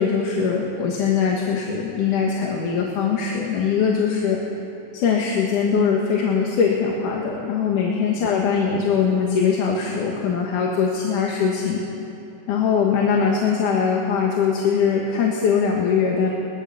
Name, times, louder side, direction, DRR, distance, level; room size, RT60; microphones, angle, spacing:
voice 1, 0.0-4.4 4.9-11.8 12.5-16.3, left 6 dB, 85° left, -1 dB, 3.2 m, -21 dB
21.5 x 20.0 x 6.9 m, 2.9 s
omnidirectional pair, 3.6 m